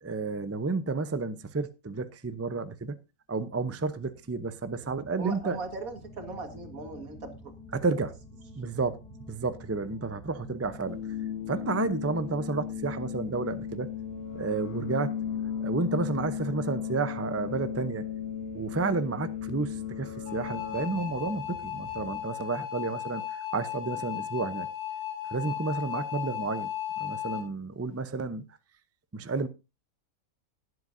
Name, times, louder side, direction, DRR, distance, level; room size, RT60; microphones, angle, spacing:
voice 1, 0.0-3.0 3.3-5.6 7.7-8.1 8.6-9.0 9.3-11.0 11.5-13.9 14.3-15.1 15.6-18.1 18.5-24.7 25.3-26.7 27.0-28.4 29.1-29.5, right 3 dB, 20° right, 0.4 m, -31 dB
sound 1, 4.1-22.2, left 1 dB, ahead, 2.3 m, -49 dB
voice 2, 5.2-7.5, right 3 dB, 75° right, 2.2 m, -38 dB
sound 2, 10.9-20.9, left 8 dB, 85° left, 1.3 m, -35 dB
sound 3, 20.3-27.4, left 10 dB, 60° left, 4.8 m, -36 dB
18.5 x 7.8 x 2.6 m
omnidirectional pair, 1.5 m